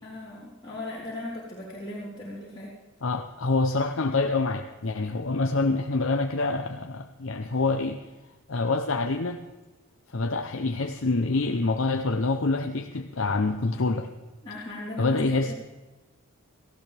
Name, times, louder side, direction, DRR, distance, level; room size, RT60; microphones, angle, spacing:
voice 1, 0.0-2.7 14.4-15.2 15.5-15.6, left 1 dB, 20° left, -9 dB, 3.9 m, -38 dB
voice 2, 3.0-8.0 8.5-9.4 10.1-14.1 15.0-15.5, left 3 dB, 65° left, 5 dB, 0.8 m, -26 dB
18.5 x 15.0 x 3.4 m, 1.2 s
head